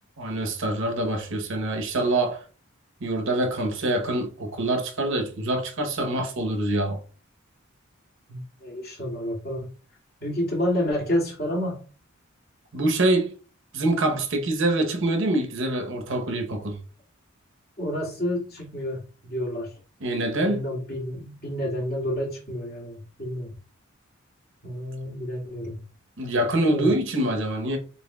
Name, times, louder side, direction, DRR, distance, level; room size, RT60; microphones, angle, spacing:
voice 1, 0.2-2.4 3.0-7.0 12.7-13.3 13.7-16.8 20.0-20.6 26.2-27.8, right 1 dB, 65° right, 0.9 m, -25 dB
voice 2, 8.3-9.7 10.2-11.8 17.8-19.7 20.4-23.5 24.6-25.8 26.7-26.9, equal, 50° left, 2.2 m, -29 dB
6.8 x 3.1 x 2.3 m
head